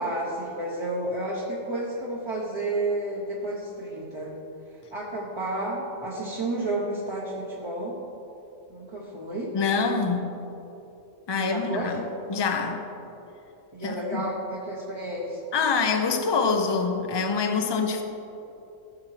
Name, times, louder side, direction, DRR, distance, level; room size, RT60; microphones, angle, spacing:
voice 1, 0.0-4.4 4.7-8.0 8.7-9.5 11.4-12.0 13.7-15.4, right 1 dB, 25° right, -5 dB, 1.0 m, -31 dB
voice 2, 9.5-10.4 11.3-12.0 12.3-12.8 13.8-14.3 15.5-18.0, left 5 dB, 30° left, 5 dB, 0.5 m, -25 dB
14.5 x 7.3 x 3.3 m, 3.0 s
omnidirectional pair, 1.3 m